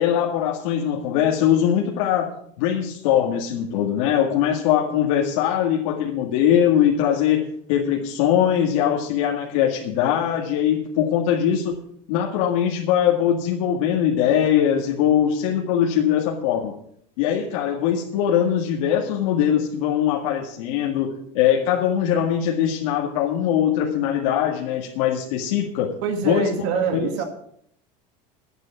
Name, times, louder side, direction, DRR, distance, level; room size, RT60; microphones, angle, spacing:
voice 1, 0.0-7.4 7.7-11.8 12.1-16.7 17.2-25.9 26.2-27.1, left 9 dB, 80° left, -1 dB, 2.0 m, -21 dB
voice 2, 26.0-27.2, right 6 dB, 70° right, 5 dB, 2.0 m, -25 dB
11.5 x 9.5 x 7.2 m, 0.68 s
cardioid pair, 165°, 17 cm